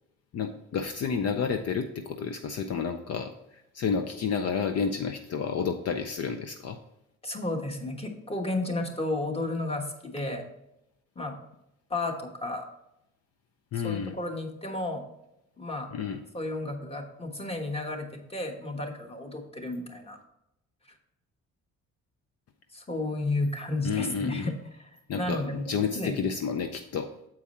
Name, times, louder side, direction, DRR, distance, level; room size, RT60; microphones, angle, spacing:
voice 1, 0.3-6.8 13.7-14.2 15.9-16.2 23.8-24.5 25.1-27.1, left 6 dB, 55° left, 7 dB, 0.6 m, -30 dB
voice 2, 7.2-10.4 11.1-11.3 11.9-12.7 13.8-15.0 15.6-15.9 16.3-20.2 22.7-26.2, left 2 dB, 20° left, 4 dB, 1.3 m, -32 dB
7.5 x 4.7 x 4.3 m, 0.85 s
cardioid pair, 90°, 30 cm